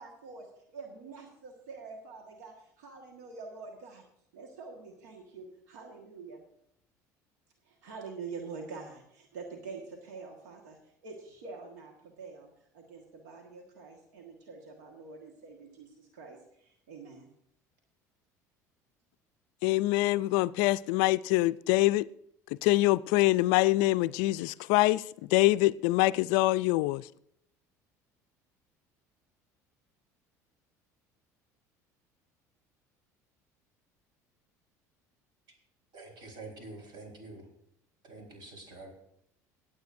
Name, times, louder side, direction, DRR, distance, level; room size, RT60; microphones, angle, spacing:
voice 1, 0.0-4.0 4.3-6.4 7.7-12.5 12.7-17.3, right 4 dB, 85° right, 1.6 m, -46 dB
voice 2, 19.6-22.1 22.6-27.1, left 18 dB, 70° left, 0.3 m, -25 dB
voice 3, 35.9-37.5 38.0-38.9, right 2 dB, 55° right, 4.4 m, -46 dB
24.0 x 8.5 x 2.6 m
hypercardioid pair, 75°, 9 cm